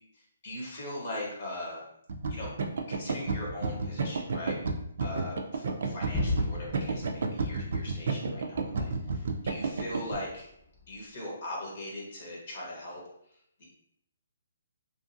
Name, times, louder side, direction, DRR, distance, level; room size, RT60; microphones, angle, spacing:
voice 1, 0.4-1.8 2.3-2.5 2.9-4.6 5.0-10.5 10.9-13.0 13.6-13.7, left 1 dB, 50° left, -3 dB, 0.9 m, -40 dB
sound 1, 2.1-10.2, right 4 dB, 65° right, 0.4 m, -31 dB
Gunshot gunfire / Fireworks / Boom, 6.1-10.9, left 3 dB, 15° left, 0.7 m, -37 dB
2.7 x 2.5 x 2.5 m, 0.75 s
hypercardioid pair, 155°, 0 cm